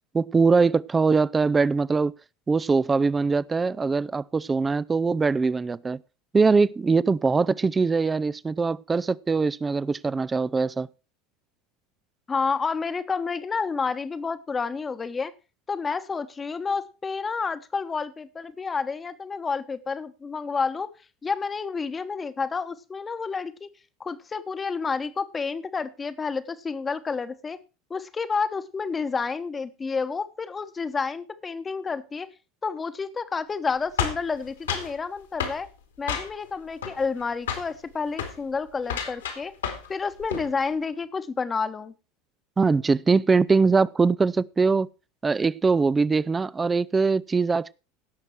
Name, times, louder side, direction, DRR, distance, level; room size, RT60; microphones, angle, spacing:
voice 1, 0.1-2.1 2.5-6.0 6.3-10.9 42.6-44.9 45.2-47.7, right 4 dB, 20° right, 0.5 m, -22 dB
voice 2, 12.3-15.3 15.7-20.9 21.2-23.7 24.0-27.6 27.9-32.3 32.6-35.7 36.0-39.5 39.9-41.9, left 5 dB, 25° left, 1.1 m, -30 dB
sound 1, 34.0-34.9 35.4-35.6 36.1-36.5 36.8-37.2 37.5-37.7 38.1-38.4 38.8-39.9 40.2-40.5, left 7 dB, 80° left, 2.6 m, -30 dB
17.0 x 6.6 x 4.5 m
figure-of-eight pair, 75°, 0 cm